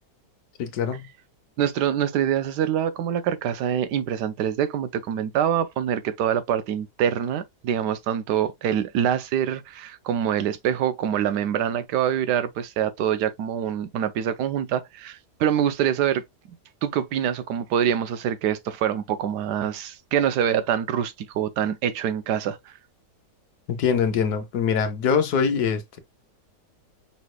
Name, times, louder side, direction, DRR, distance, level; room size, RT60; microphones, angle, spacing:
voice 1, 0.6-1.1 23.7-26.0, left 6 dB, 75° left, 1.3 m, -23 dB
voice 2, 1.6-16.2 16.8-22.6, right 9 dB, 85° right, 1.2 m, -25 dB
5.5 x 3.2 x 2.2 m
omnidirectional pair, 1.7 m